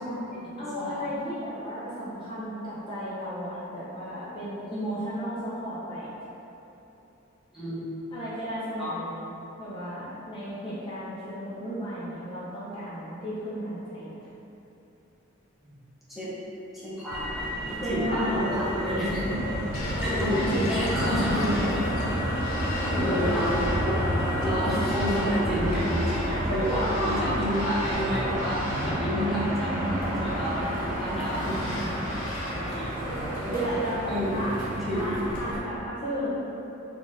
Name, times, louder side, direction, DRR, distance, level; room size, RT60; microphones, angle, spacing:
voice 1, 0.0-1.2 7.5-7.9 8.8-8.9 15.6-15.8 16.1-16.4 16.8-17.2 17.9-19.4 20.0-21.8 22.1-22.2 22.4-22.6 22.9-24.0 24.4-28.6 28.8-32.1 32.5-33.0 34.1-34.4 34.8-35.2, equal, ahead, -11 dB, 0.9 m, -30 dB
voice 2, 0.6-6.1 8.1-9.3 9.6-14.1 17.8-18.5 20.0-21.6 22.8-23.4 26.5-27.4 33.0-34.0 34.3-34.5 34.9-36.5, equal, 25° left, -11 dB, 0.6 m, -33 dB
Motor vehicle (road), 17.1-35.6, equal, 45° right, 1.0 m, -30 dB
Bird vocalization bird call bird song, 19.7-33.4, left 1 dB, 75° left, 0.6 m, -41 dB
4.3 x 2.5 x 3.5 m, 3.0 s
head